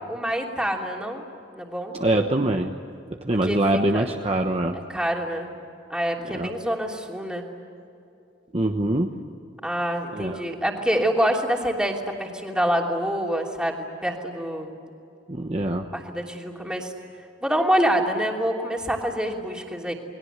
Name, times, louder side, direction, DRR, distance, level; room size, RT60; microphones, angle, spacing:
voice 1, 0.1-1.2 1.5-1.9 3.5-4.1 4.9-5.5 5.9-7.5 9.6-14.7 15.9-16.9 17.4-19.9, equal, 5° right, 0 dB, 3.0 m, -26 dB
voice 2, 1.9-2.7 3.2-4.8 6.3-6.5 8.5-9.1 10.1-10.4 15.3-15.8, right 1 dB, 35° right, 3 dB, 1.1 m, -23 dB
29.0 x 22.0 x 8.2 m, 2.6 s
head